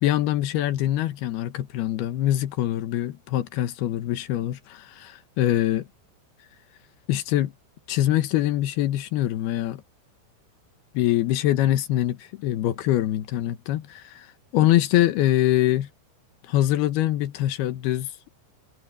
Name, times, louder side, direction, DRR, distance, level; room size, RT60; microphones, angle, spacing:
voice 1, 0.0-5.8 7.1-7.5 7.9-9.8 10.9-14.3 14.5-15.9 16.5-18.1, left 13 dB, 70° left, 2.6 m, -24 dB
omnidirectional pair, 5.6 m